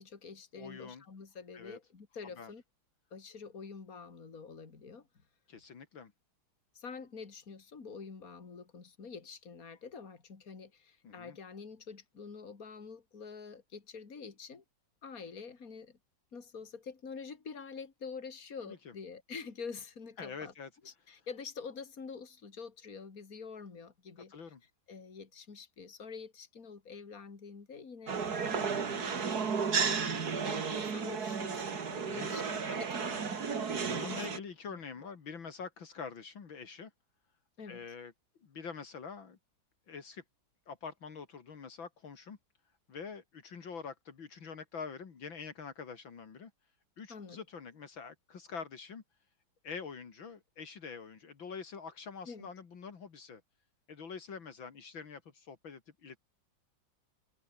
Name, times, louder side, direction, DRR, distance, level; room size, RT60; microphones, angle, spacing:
voice 1, 0.0-2.6 3.1-5.1 6.7-14.6 15.0-16.0 16.3-20.5 20.8-24.3 24.9-29.4 29.8-34.2 34.7-34.8 37.6-37.8 47.1-47.4 52.3-52.5, left 5 dB, 45° left, 3.1 m, -47 dB
voice 2, 0.5-1.0 1.5-1.8 2.4-2.5 5.5-6.1 11.0-11.4 18.7-18.9 20.2-20.7 24.3-24.6 28.3-28.6 31.8-32.4 33.3-36.9 37.7-38.1 38.4-39.4 39.9-40.2 40.7-42.4 42.9-46.5 47.0-49.0 49.6-53.4 53.9-56.2, left 5 dB, 70° left, 3.0 m, -45 dB
sound 1, 28.1-34.4, right 5 dB, 50° right, 2.5 m, -33 dB
omnidirectional pair, 2.2 m